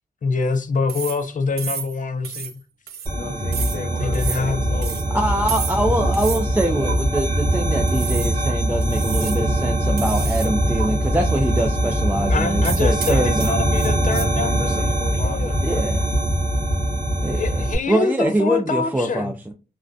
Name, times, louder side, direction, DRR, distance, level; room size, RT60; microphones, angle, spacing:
voice 1, 0.2-2.5 4.0-4.8 12.3-15.5 17.3-19.3, left 4 dB, 50° left, 0.5 m, -25 dB
sound 1, 0.9-1.3 1.6-2.0 2.2-2.6 2.9-3.1 3.5-3.8 4.1-4.5 4.8-5.1 5.5-5.8 6.1-6.5 6.9-7.0 7.9-8.4 8.8-9.5 10.0-10.5 10.8-10.9 12.6-14.3, right 8 dB, 70° right, 0.5 m, -31 dB
voice 2, 3.1-5.5 14.4-15.9, left 3 dB, 70° left, 0.8 m, -36 dB
sound 2, 3.1-17.7, right 1 dB, 25° right, 0.8 m, -22 dB
voice 3, 5.1-13.6 15.6-15.9 17.2-19.3, right 1 dB, 10° right, 0.4 m, -23 dB
2.5 x 2.2 x 2.3 m
wide cardioid pair, 95°, 17 cm